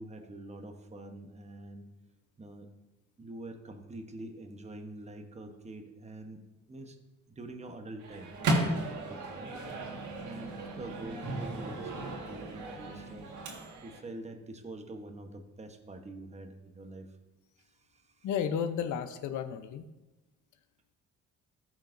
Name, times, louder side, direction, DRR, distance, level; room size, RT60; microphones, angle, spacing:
voice 1, 0.0-1.9 2.4-2.7 3.2-6.4 6.7-7.0 7.3-9.6 10.2-13.3 13.8-17.1 17.6-18.5, right 2 dB, 20° right, 5 dB, 1.0 m, -45 dB
Microwave oven, 8.0-14.0, right 2 dB, 75° right, 1.7 m, -35 dB
voice 2, 18.2-19.9, left 8 dB, 75° left, 10 dB, 0.7 m, -33 dB
14.0 x 6.1 x 2.6 m, 1.1 s
cardioid pair, 90°, 30 cm